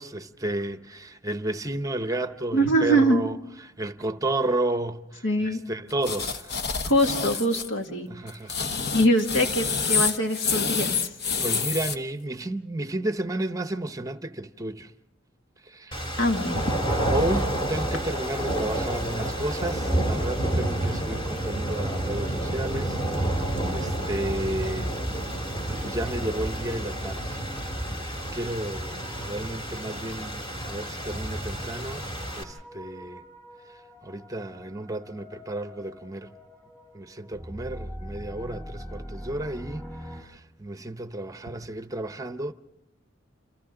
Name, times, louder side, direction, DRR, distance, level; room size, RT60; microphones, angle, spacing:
voice 1, 0.0-3.4 3.6-6.6 8.1-8.7 11.4-14.9 15.6-16.0 17.1-23.0 23.2-24.9 25.3-27.4 28.0-32.0 32.3-33.2 33.7-36.3 36.9-42.5, right 1 dB, 20° right, 0.8 m, -32 dB
voice 2, 2.5-3.2 5.2-5.6 6.8-8.1 8.9-11.1 16.2-16.7, right 1 dB, 75° left, 2.3 m, -23 dB
sound 1, 6.0-7.7 8.3-12.0, left 5 dB, 55° left, 1.1 m, -27 dB
sound 2, 15.9-32.4, right 1 dB, 25° left, 2.6 m, -29 dB
sound 3, 24.8-40.2, equal, 10° left, 3.6 m, -45 dB
29.0 x 27.5 x 3.8 m
head